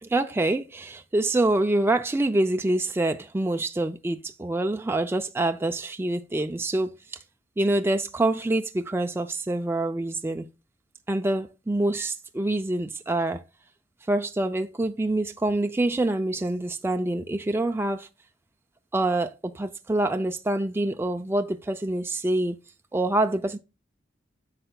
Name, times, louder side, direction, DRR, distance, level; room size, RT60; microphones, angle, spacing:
voice 1, 0.0-7.0 7.6-10.5 11.1-13.4 14.1-18.1 18.9-22.6 22.9-23.6, right 2 dB, 10° right, 0.4 m, -26 dB
10.0 x 6.6 x 2.2 m
head